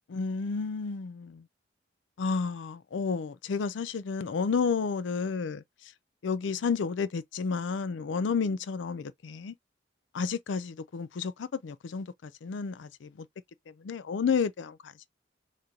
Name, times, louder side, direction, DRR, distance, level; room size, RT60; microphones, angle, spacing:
voice 1, 0.1-1.4 2.2-5.6 6.2-9.5 10.1-13.3 13.7-15.1, left 5 dB, 80° left, 0.4 m, -31 dB
3.7 x 3.0 x 2.5 m
head